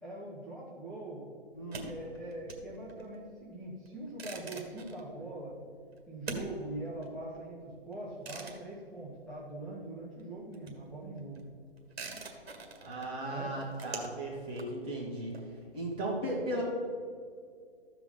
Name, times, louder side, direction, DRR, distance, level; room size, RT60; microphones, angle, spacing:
voice 1, 0.0-1.3 1.9-5.6 6.1-11.4 13.3-13.5, right 2 dB, ahead, -10 dB, 1.9 m, -42 dB
voice 2, 1.5-1.9 12.8-16.6, right 1 dB, 15° right, -5 dB, 2.2 m, -36 dB
sound 1, 1.5-9.9 10.1-15.9, right 3 dB, 70° right, 1.9 m, -46 dB
13.5 x 5.0 x 5.4 m, 2.2 s
hypercardioid pair, 140°, 32 cm